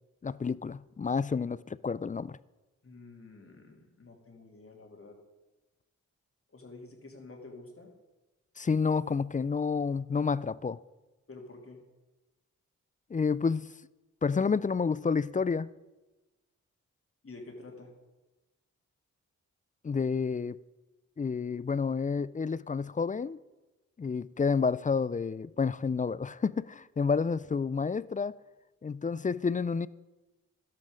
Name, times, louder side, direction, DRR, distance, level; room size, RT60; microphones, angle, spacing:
voice 1, 0.2-2.4 8.6-10.8 13.1-13.7 14.2-15.7 19.8-20.6 21.2-23.4 24.0-28.3 28.8-29.9, left 5 dB, 25° left, 0.4 m, -29 dB
voice 2, 2.8-5.2 6.5-7.9 11.3-11.8 17.2-17.9, left 3 dB, 45° left, 2.8 m, -49 dB
12.0 x 11.5 x 5.2 m
cardioid pair, 55°, 30 cm